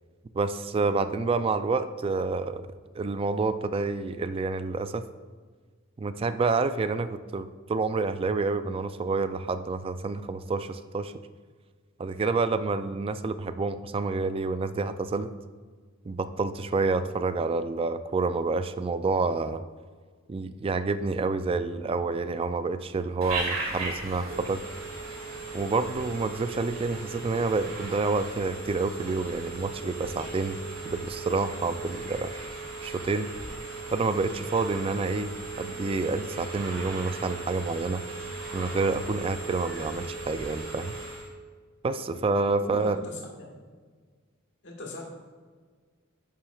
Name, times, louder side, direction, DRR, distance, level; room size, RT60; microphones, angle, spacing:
voice 1, 0.3-2.7 2.9-5.0 6.0-11.1 12.0-15.3 16.1-19.6 20.3-24.6 25.5-32.3 32.8-33.3 33.9-35.3 35.6-38.0 38.5-40.9 41.8-43.0, right 3 dB, 25° right, 11 dB, 0.3 m, -28 dB
Telephone, 23.2-41.3, right 3 dB, 75° right, 1.9 m, -37 dB
voice 2, 42.6-43.6 44.6-45.0, left 1 dB, 60° left, -1 dB, 1.7 m, -39 dB
11.0 x 7.3 x 2.4 m, 1.5 s
head